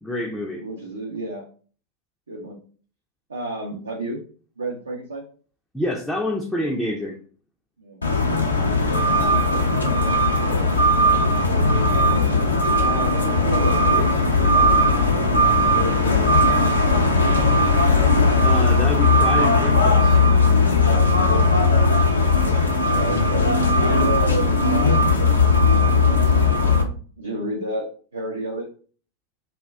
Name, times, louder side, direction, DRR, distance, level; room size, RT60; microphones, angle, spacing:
voice 1, 0.0-0.7 5.7-7.2 18.4-20.2, left 1 dB, 5° left, -1 dB, 0.4 m, -27 dB
voice 2, 0.6-1.4 2.3-2.6 3.3-4.2 4.6-5.2 7.8-8.0 8.8-9.1 10.4-10.7 11.4-12.4 12.8-17.1 22.9-26.4 27.2-28.7, right 2 dB, 75° right, -2 dB, 0.5 m, -32 dB
sound 1, 8.0-26.8, left 2 dB, 75° left, 0.5 m, -18 dB
2.2 x 2.1 x 3.3 m, 0.42 s
figure-of-eight pair, 90°, 0 cm